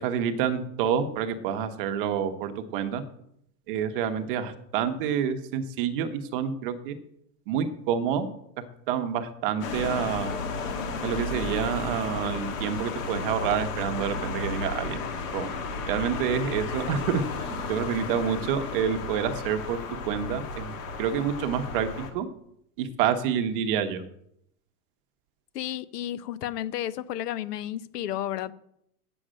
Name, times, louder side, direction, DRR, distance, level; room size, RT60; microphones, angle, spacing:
voice 1, 0.0-3.0 3.7-7.0 7.5-8.3 8.9-10.3 11.0-15.0 15.3-15.5 15.9-22.3 22.8-24.0, right 8 dB, 35° right, 8 dB, 0.8 m, -28 dB
sound 1, 9.6-22.1, left 4 dB, 55° left, 1.6 m, -33 dB
voice 2, 25.5-28.5, left 12 dB, 85° left, 17 dB, 0.9 m, -32 dB
8.8 x 7.1 x 6.2 m, 0.73 s
supercardioid pair, 170°, 46 cm